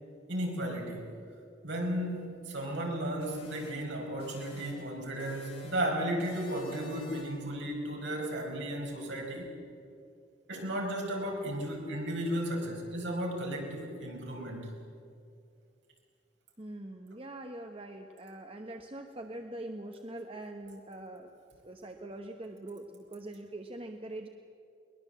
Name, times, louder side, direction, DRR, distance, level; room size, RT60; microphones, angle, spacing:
voice 1, 0.3-1.1 1.6-9.5 10.5-14.7, right 1 dB, 65° right, 0 dB, 4.9 m, -34 dB
sound 1, 3.2-4.9 5.2-5.9 6.2-7.5, left 1 dB, 30° left, 5.1 m, -50 dB
voice 2, 16.6-21.3 21.6-24.3, right 1 dB, 30° right, 4 dB, 1.1 m, -43 dB
22.0 x 20.5 x 7.6 m, 2.4 s
head